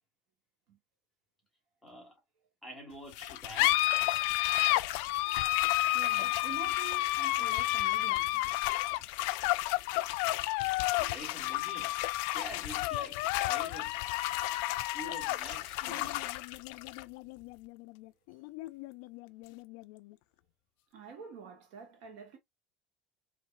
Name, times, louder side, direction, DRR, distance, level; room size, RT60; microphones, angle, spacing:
voice 1, 1.8-2.1 2.6-3.8 6.2-6.3 10.6-10.7 11.0-12.0 12.3-14.0 14.5-14.6 14.9-16.2, equal, ahead, 1.6 m, -47 dB
sound 1, 3.1-20.1, left 18 dB, 65° left, 0.3 m, -31 dB
voice 2, 5.9-9.1 20.9-22.4, right 6 dB, 60° right, 1.6 m, -48 dB
4.7 x 3.1 x 2.2 m
cardioid pair, 165°, 0 cm